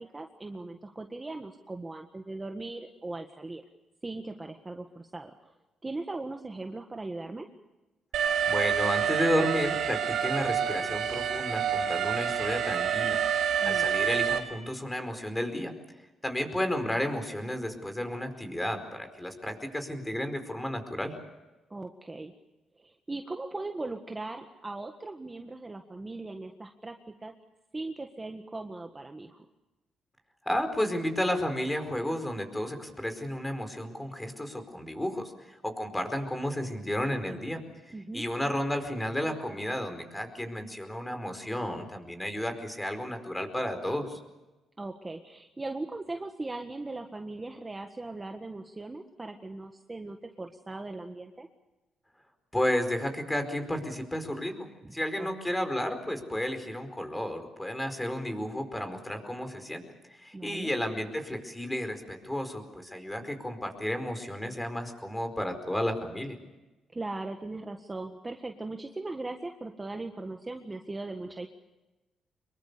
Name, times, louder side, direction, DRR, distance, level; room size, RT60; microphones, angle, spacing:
voice 1, 0.0-3.6 4.0-5.5 5.8-7.5 13.6-13.9 21.7-22.3 22.8-27.0 27.2-27.3 27.7-29.4 37.9-38.2 44.8-51.5 54.8-55.3 60.3-60.7 66.9-71.5, right 2 dB, 20° right, 5 dB, 1.7 m, -39 dB
Alarm, 8.1-14.4, right 8 dB, 75° right, 2.6 m, -28 dB
voice 2, 8.5-15.7 16.2-21.2 30.4-44.2 52.5-59.8 60.1-66.4, left 1 dB, 10° left, 7 dB, 4.7 m, -32 dB
25.0 x 22.5 x 6.9 m, 1.1 s
cardioid pair, 90°, 0 cm